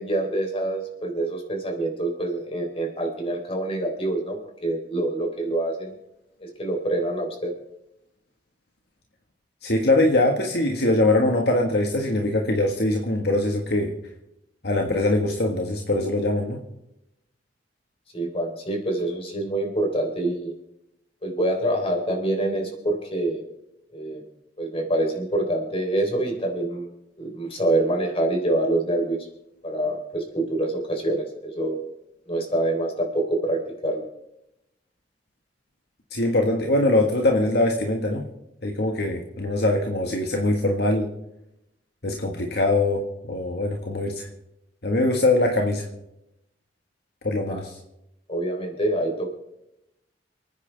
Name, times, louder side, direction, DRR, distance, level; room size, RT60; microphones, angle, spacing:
voice 1, 0.0-5.9 6.4-7.5 18.1-20.5 21.2-23.4 23.9-24.2 24.6-26.9 27.2-29.2 29.6-31.8 32.3-34.0 47.5-47.6 48.3-49.3, right 1 dB, 35° left, 2 dB, 3.8 m, -26 dB
voice 2, 9.6-13.9 14.6-16.6 36.1-38.3 38.6-41.1 42.0-44.3 44.8-45.9 47.2-47.7, left 2 dB, 65° left, 2 dB, 1.7 m, -22 dB
29.0 x 9.8 x 3.5 m, 0.84 s
head